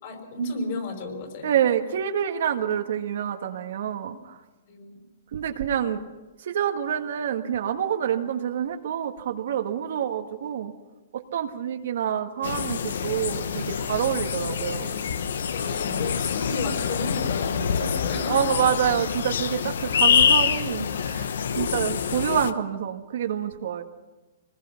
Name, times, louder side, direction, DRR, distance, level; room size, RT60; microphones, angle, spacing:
voice 1, 0.0-1.6 4.1-4.2 4.7-5.0 15.5-18.4, left 2 dB, 45° left, 4 dB, 5.2 m, -33 dB
voice 2, 1.4-4.4 5.3-6.0 6.4-10.7 11.1-14.9 18.3-23.8, right 9 dB, 60° right, 5 dB, 1.7 m, -27 dB
sound 1, 12.4-22.5, left 7 dB, 75° left, 1.1 m, -26 dB
25.0 x 20.0 x 5.9 m, 1.1 s
hypercardioid pair, 160°, 0 cm